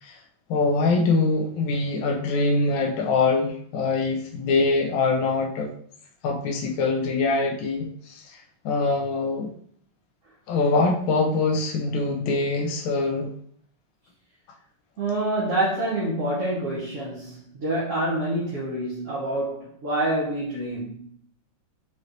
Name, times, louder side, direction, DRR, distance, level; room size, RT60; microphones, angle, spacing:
voice 1, 0.5-5.7 6.2-9.5 10.5-13.3, left 3 dB, 75° left, 1 dB, 1.4 m, -24 dB
voice 2, 15.0-21.0, right 1 dB, 55° right, -6 dB, 0.8 m, -27 dB
5.7 x 3.0 x 2.5 m, 0.64 s
omnidirectional pair, 2.3 m